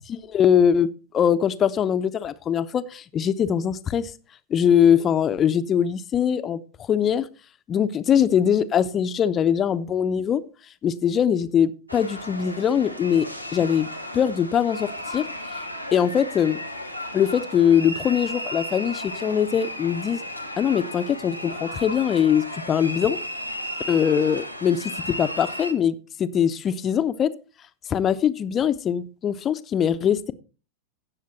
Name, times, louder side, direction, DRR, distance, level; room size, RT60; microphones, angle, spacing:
voice 1, 0.1-0.9 1.1-4.1 4.5-7.3 7.7-10.4 10.8-13.2 13.5-13.9 14.1-15.3 15.9-16.6 17.1-20.2 20.6-23.2 23.9-27.3 27.9-30.3, left 8 dB, 25° left, 0.8 m, -22 dB
sound 1, 11.9-25.7, equal, 90° right, 1.4 m, -34 dB
17.0 x 6.6 x 4.3 m
figure-of-eight pair, 90°, 0 cm